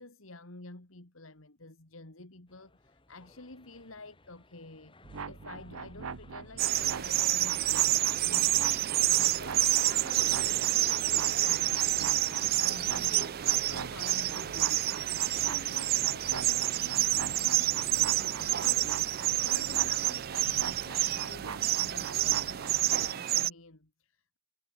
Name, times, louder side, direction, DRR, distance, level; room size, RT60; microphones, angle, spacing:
voice 1, 0.0-5.0 5.3-13.4 13.7-15.1 15.4-19.1 19.4-24.4, left 2 dB, 75° left, 2.7 m, -50 dB
sound 1, 2.5-18.8, left 2 dB, 25° left, 2.7 m, -58 dB
sound 2, 5.0-23.1, right 5 dB, 80° right, 0.7 m, -43 dB
sound 3, 6.6-23.5, right 15 dB, 45° right, 0.4 m, -28 dB
head